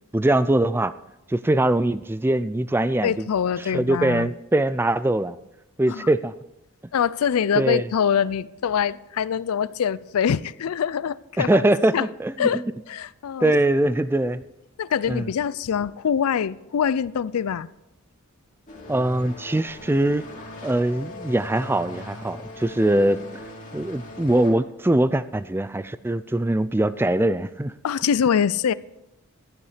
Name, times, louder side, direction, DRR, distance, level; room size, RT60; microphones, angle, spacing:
voice 1, 0.1-0.9 1.3-3.3 3.7-5.4 5.8-6.3 7.6-7.8 11.4-12.5 13.4-14.4 15.1-15.3 18.9-20.3 20.6-23.2 23.7-27.7, right 1 dB, 10° right, 15 dB, 0.3 m, -22 dB
voice 2, 3.0-4.3 5.9-6.1 6.9-11.6 11.9-12.1 12.4-13.5 14.8-17.7 27.8-28.7, left 7 dB, 80° left, 19 dB, 0.4 m, -24 dB
sound 1, 18.7-24.5, left 2 dB, 35° left, 2.7 m, -40 dB
12.5 x 9.9 x 5.0 m, 0.90 s
head